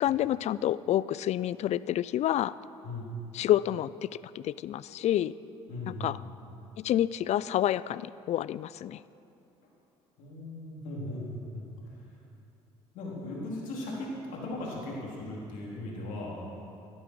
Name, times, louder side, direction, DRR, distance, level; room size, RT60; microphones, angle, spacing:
voice 1, 0.0-2.5 3.3-4.1 4.3-5.4 5.9-6.2 6.8-9.0, left 12 dB, 50° left, 18 dB, 0.4 m, -28 dB
voice 2, 5.7-6.2 10.2-11.7 12.0-12.1 12.9-16.4, left 1 dB, 70° left, -4 dB, 3.9 m, -38 dB
16.5 x 11.5 x 4.8 m, 2.8 s
supercardioid pair, 70°, 14 cm